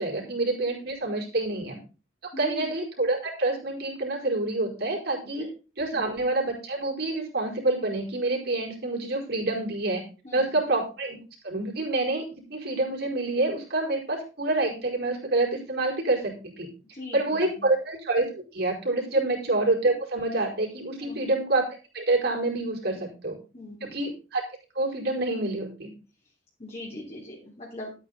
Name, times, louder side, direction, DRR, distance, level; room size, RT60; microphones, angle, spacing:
voice 1, 0.0-1.8 2.4-5.4 5.8-10.0 10.3-11.2 11.4-12.2 12.5-16.7 17.1-21.6 21.9-23.4 23.8-24.4 24.7-25.9, right 2 dB, 60° right, 0 dB, 4.8 m, -27 dB
voice 2, 2.3-2.7 5.2-5.5 5.9-6.1 10.2-10.5 16.9-17.7 19.1-19.3 21.0-21.3 22.9-23.0 23.5-24.0 26.6-27.9, left 1 dB, 35° left, -3 dB, 3.3 m, -40 dB
12.5 x 9.2 x 4.0 m, 0.34 s
head